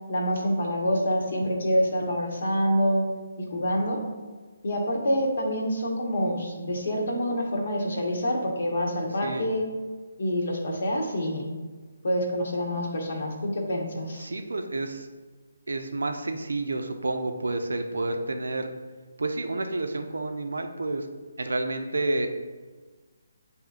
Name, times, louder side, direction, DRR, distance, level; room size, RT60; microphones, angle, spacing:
voice 1, 0.1-3.1 3.4-4.0 4.6-9.6 10.2-11.4 12.0-14.3, equal, 60° left, 0 dB, 1.1 m, -26 dB
voice 2, 14.2-15.1 15.7-18.7 19.2-21.1 21.4-22.3, right 2 dB, 75° right, 6 dB, 0.5 m, -30 dB
7.9 x 2.7 x 2.4 m, 1.4 s
figure-of-eight pair, 145°, 0 cm